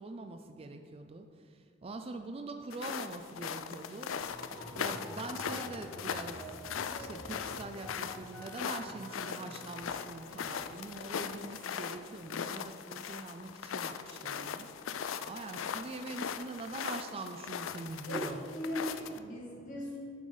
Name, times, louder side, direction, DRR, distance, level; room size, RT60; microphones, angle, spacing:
voice 1, 0.0-4.2 4.7-6.4 7.0-18.4, right 3 dB, 30° right, 6 dB, 0.4 m, -44 dB
sound 1, 2.7-19.2, left 7 dB, 90° left, 0.4 m, -40 dB
sound 2, 4.3-10.8, equal, 5° left, 1.5 m, -49 dB
voice 2, 18.1-20.0, equal, 40° left, -4 dB, 2.3 m, -38 dB
9.4 x 7.5 x 4.0 m, 2.3 s
head